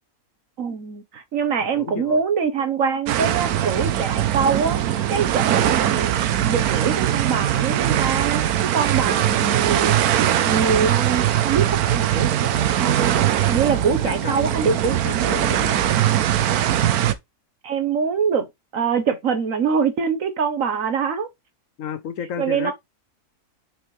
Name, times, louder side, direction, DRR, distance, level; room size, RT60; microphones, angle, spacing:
voice 1, 0.6-4.8 5.1-6.1 6.5-10.0 10.4-15.0 17.6-18.5 18.7-21.3 22.4-22.7, right 6 dB, 60° right, 1.4 m, -24 dB
voice 2, 1.7-2.2 13.9-16.0 21.8-22.7, left 8 dB, 65° left, 1.0 m, -32 dB
sound 1, 3.1-17.1, right 11 dB, 80° right, 1.2 m, -21 dB
6.8 x 4.6 x 3.2 m
omnidirectional pair, 1.6 m